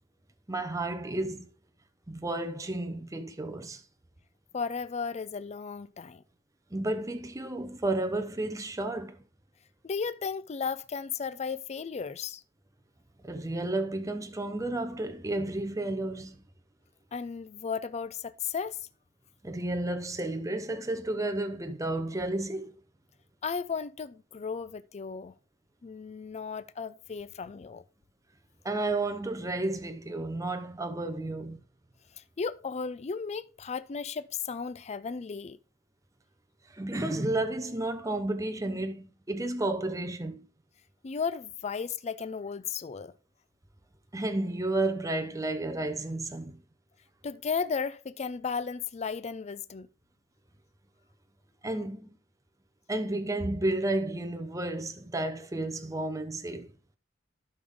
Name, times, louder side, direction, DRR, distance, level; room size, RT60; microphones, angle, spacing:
voice 1, 0.5-1.5 2.1-3.8 6.7-9.2 13.2-16.4 19.4-22.7 28.6-31.6 36.7-40.5 44.1-46.6 51.6-52.1 52.9-56.7, right 2 dB, 15° right, 0.8 m, -32 dB
voice 2, 4.5-6.2 9.8-12.4 17.1-18.9 23.4-25.3 25.8-27.8 32.2-35.6 41.0-43.1 47.2-49.9, left 5 dB, 35° left, 0.4 m, -35 dB
12.0 x 5.5 x 3.6 m
head